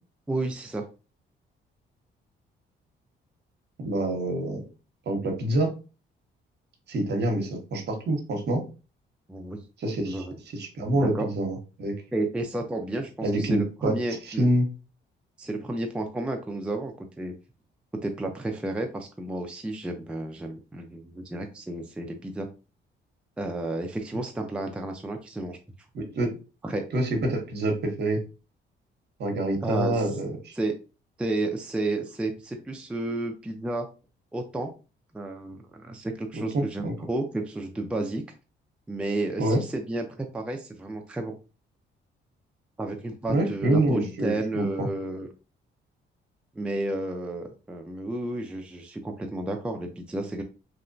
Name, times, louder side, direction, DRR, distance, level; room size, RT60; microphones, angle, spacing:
voice 1, 0.3-0.9 9.3-9.6 10.1-10.2 10.9-11.3 12.1-14.5 15.4-17.3 18.0-22.5 23.4-25.6 26.6-26.8 29.6-30.0 30.6-30.7 31.2-33.9 34.3-34.7 35.1-38.2 38.9-41.3 42.8-45.3 46.5-50.4, right 2 dB, 5° right, 3 dB, 0.4 m, -31 dB
voice 2, 3.8-4.6 5.1-5.7 6.9-8.6 9.8-10.2 10.5-11.9 13.2-14.0 14.3-14.7 25.9-26.4 26.9-28.2 29.2-30.5 36.3-36.9 39.4-39.6 43.3-44.9, right 1 dB, 60° right, 4 dB, 0.8 m, -26 dB
2.8 x 2.1 x 2.5 m, 0.32 s
cardioid pair, 90°, 20 cm